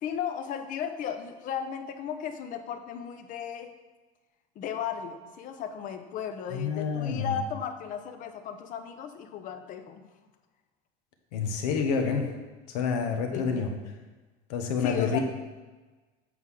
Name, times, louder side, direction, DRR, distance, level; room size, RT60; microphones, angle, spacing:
voice 1, 0.0-3.7 4.6-10.1 13.3-13.7 14.8-15.2, left 8 dB, 40° left, 8 dB, 0.7 m, -35 dB
voice 2, 6.5-7.4 11.3-12.3 12.7-13.7 14.5-15.2, left 6 dB, 85° left, 4 dB, 1.3 m, -28 dB
7.9 x 3.8 x 6.3 m, 1.3 s
supercardioid pair, 130°, 20 cm